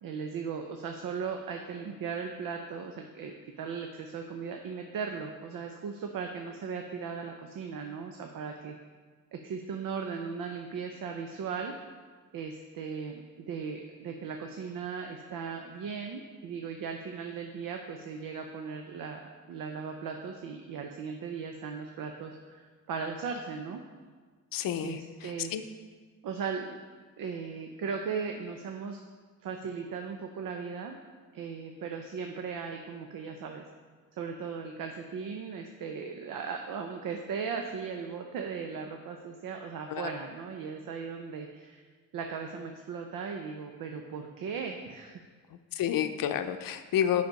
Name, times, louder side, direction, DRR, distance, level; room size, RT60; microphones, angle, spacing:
voice 1, 0.0-8.7 9.3-11.7 12.3-19.2 19.5-23.8 24.8-25.5 26.2-26.8 27.2-29.0 29.4-31.0 31.3-33.6 34.2-41.8 42.1-45.1, right 6 dB, 80° right, 3 dB, 0.7 m, -37 dB
voice 2, 24.5-25.0 25.4-25.6 39.9-40.1 45.7-47.2, left 10 dB, 85° left, 9 dB, 0.6 m, -29 dB
8.0 x 5.1 x 5.2 m, 1.5 s
cardioid pair, 100°, 33 cm